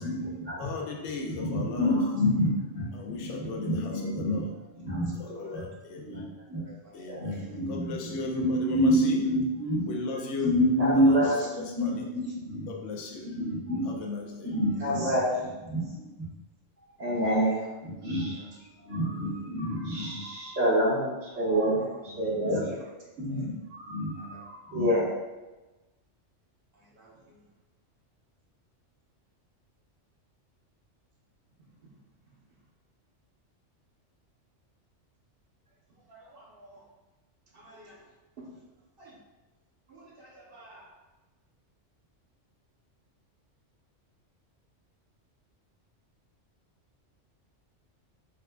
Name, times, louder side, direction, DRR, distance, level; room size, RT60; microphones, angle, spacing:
voice 1, 0.0-0.7 1.2-5.6 5.9-6.6 7.1-12.7 13.2-14.0 14.4-16.3 17.0-18.5 18.8-22.8 23.2-25.1, equal, 80° right, -10 dB, 1.9 m, -28 dB
voice 2, 0.6-2.0 2.9-4.5 5.2-6.2 6.9-9.2 9.9-10.6 11.1-12.1 12.7-13.3 13.9-14.5, left 3 dB, 85° left, 1 dB, 1.0 m, -37 dB
voice 3, 1.6-2.2 3.5-3.6 5.3-5.7 6.5-7.5 8.2-8.3 11.2-11.5 14.8-15.4 17.2-17.7 18.3-19.4 22.6-22.9 23.3-23.5 24.2-24.5 26.7-27.5 31.6-31.9 32.3-32.6 35.9-36.9 37.5-38.6 39.0-39.2 39.9-41.0, right 1 dB, 50° right, -4 dB, 1.1 m, -51 dB
7.1 x 2.4 x 2.3 m, 1.1 s
omnidirectional pair, 1.2 m